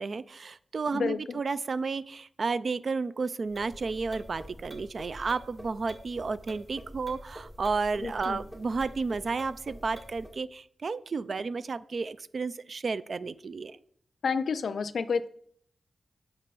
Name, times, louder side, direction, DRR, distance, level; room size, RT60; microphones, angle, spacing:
voice 1, 0.0-13.8, right 4 dB, 65° right, 16 dB, 0.3 m, -32 dB
sound 1, 3.5-10.4, equal, 20° right, 1.5 m, -46 dB
voice 2, 8.0-8.4 14.2-15.3, left 5 dB, 75° left, 14 dB, 0.4 m, -29 dB
6.0 x 5.2 x 5.3 m, 0.64 s
cardioid pair, 45°, 0 cm